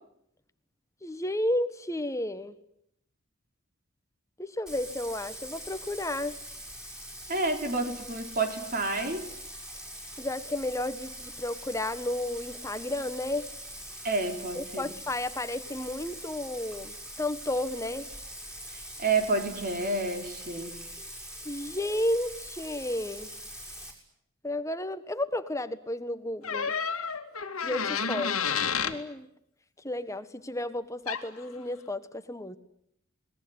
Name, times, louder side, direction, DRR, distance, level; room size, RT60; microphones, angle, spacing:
voice 1, 1.0-2.5 4.4-6.3 10.2-13.5 14.5-18.1 21.4-23.3 24.4-26.7 27.6-29.3 29.8-32.6, left 1 dB, 15° left, 11 dB, 1.5 m, -32 dB
Bathtub (filling or washing), 4.7-23.9, equal, 5° right, 6.5 m, -43 dB
voice 2, 7.3-9.3 14.0-14.9 18.7-20.8, right 3 dB, 40° right, 5 dB, 4.0 m, -29 dB
sound 1, 26.4-29.0 31.1-31.3, left 6 dB, 85° left, 2.3 m, -30 dB
27.5 x 21.0 x 9.7 m, 0.76 s
head